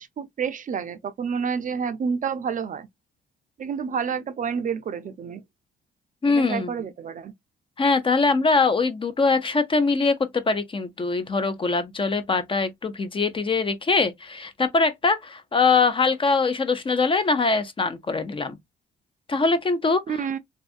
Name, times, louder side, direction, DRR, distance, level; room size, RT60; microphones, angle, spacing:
voice 1, 0.0-2.9 3.6-5.4 6.2-7.3 20.1-20.4, right 6 dB, 40° right, 0.4 m, -29 dB
voice 2, 6.2-6.7 7.8-18.6 19.3-20.0, left 4 dB, 25° left, 0.5 m, -22 dB
2.5 x 2.3 x 2.4 m
cardioid pair, 90°, 20 cm